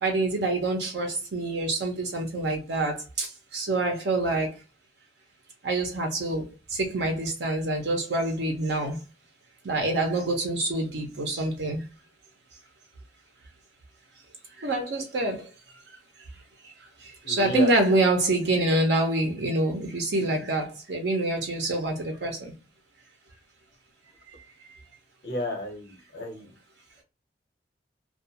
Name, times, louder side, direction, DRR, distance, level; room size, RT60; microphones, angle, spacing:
voice 1, 0.0-4.5 5.6-9.0 9.6-11.9 14.6-15.5 17.0-22.5, right 2 dB, 85° right, 0.7 m, -26 dB
voice 2, 17.2-17.7 25.2-26.5, left 1 dB, 70° left, 1.0 m, -32 dB
2.3 x 2.3 x 2.8 m
head